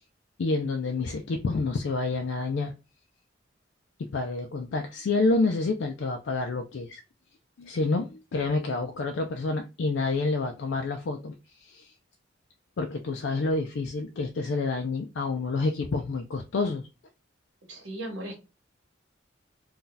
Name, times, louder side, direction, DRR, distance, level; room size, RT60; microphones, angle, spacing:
voice 1, 0.4-2.7 4.1-7.0 7.6-11.9 12.8-16.9, left 3 dB, 70° left, 4 dB, 0.4 m, -28 dB
voice 2, 17.7-18.4, right 1 dB, 90° right, 0 dB, 1.0 m, -36 dB
2.7 x 2.3 x 3.8 m, 0.29 s
head